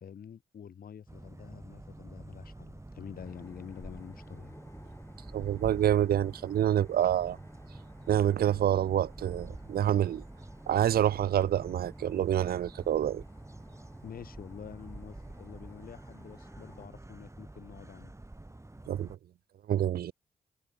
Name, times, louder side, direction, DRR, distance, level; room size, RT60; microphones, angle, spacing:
voice 1, 0.0-4.6 14.0-18.1, left 8 dB, 70° left, 2.6 m, -47 dB
sound 1, 1.1-19.2, right 2 dB, 20° right, 2.4 m, -48 dB
sound 2, 3.1-16.9, left 1 dB, 15° left, 5.1 m, -57 dB
voice 2, 5.3-7.4 8.1-10.2 10.7-13.2 18.9-19.2 19.7-20.1, right 11 dB, 75° right, 0.8 m, -27 dB
supercardioid pair, 40°, 16 cm